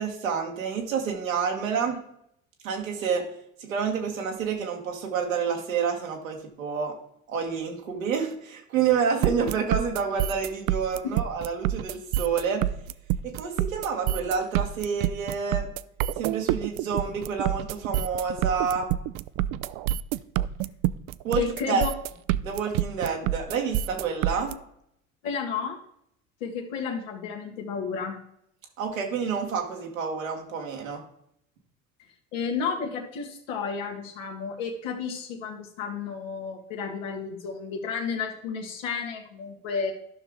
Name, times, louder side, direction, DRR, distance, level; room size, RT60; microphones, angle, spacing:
voice 1, 0.0-2.0 2.6-3.3 3.6-6.9 7.3-12.6 13.2-15.7 16.2-18.9 21.2-21.8 22.4-24.5 28.8-31.0, right 6 dB, 90° right, 2 dB, 1.6 m, -28 dB
sound 1, 9.2-24.5, right 13 dB, 60° right, 0.5 m, -27 dB
voice 2, 21.4-21.9 25.2-25.8 26.4-28.2 32.3-39.9, left 5 dB, 80° left, 1 dB, 1.9 m, -32 dB
12.5 x 5.8 x 3.7 m, 0.73 s
hypercardioid pair, 65°, 39 cm